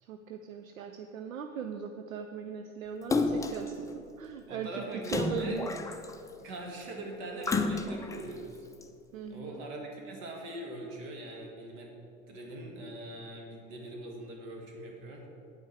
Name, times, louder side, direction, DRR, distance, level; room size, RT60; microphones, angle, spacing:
voice 1, 0.0-5.7 9.1-9.6, right 7 dB, 80° right, 6 dB, 0.6 m, -39 dB
Splash splatter, 3.1-3.7 5.0-6.3 7.4-8.2 8.8-8.9, left 3 dB, 10° left, 0.5 m, -30 dB
voice 2, 4.5-5.6 6.4-8.7 9.3-11.9 12.3-15.3, right 1 dB, 55° right, 0 dB, 2.0 m, -42 dB
9.2 x 8.6 x 4.6 m, 2.7 s
figure-of-eight pair, 70°, 41 cm